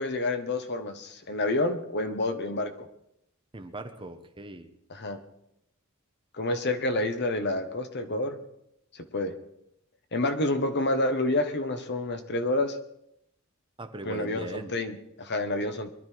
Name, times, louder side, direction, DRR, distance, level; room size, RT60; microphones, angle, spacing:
voice 1, 0.0-2.9 4.9-5.2 6.3-8.4 8.9-9.3 10.1-12.8 14.0-15.9, left 2 dB, 55° left, 8 dB, 1.4 m, -29 dB
voice 2, 3.5-4.7 13.8-14.7, right 2 dB, 25° right, 7 dB, 1.1 m, -39 dB
22.5 x 12.0 x 4.7 m, 0.77 s
head